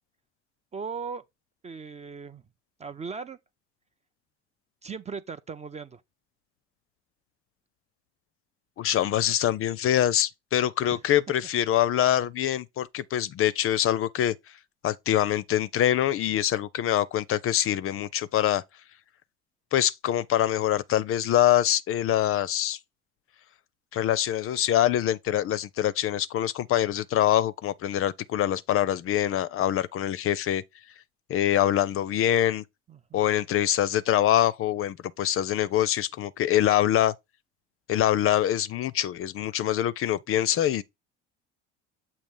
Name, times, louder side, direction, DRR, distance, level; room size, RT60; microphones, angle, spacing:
voice 1, 0.7-1.2 1.6-2.4 2.8-3.4 4.8-6.0 10.9-11.0 32.9-33.3, right 5 dB, 20° right, 0.4 m, -38 dB
voice 2, 8.8-14.3 14.8-18.6 19.7-22.8 23.9-30.6 31.3-32.6 33.1-37.1 37.9-40.8, left 12 dB, 40° left, 0.5 m, -24 dB
7.1 x 2.8 x 5.3 m
hypercardioid pair, 70°, 34 cm